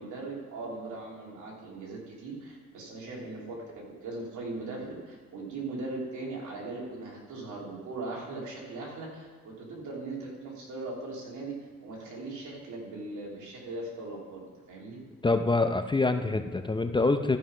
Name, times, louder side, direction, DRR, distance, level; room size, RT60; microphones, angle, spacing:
voice 1, 0.0-15.0, right 2 dB, 75° right, -3 dB, 3.0 m, -39 dB
voice 2, 15.2-17.4, left 3 dB, 15° left, 7 dB, 0.5 m, -25 dB
13.5 x 5.6 x 5.0 m, 1.5 s
cardioid pair, 90°, 30 cm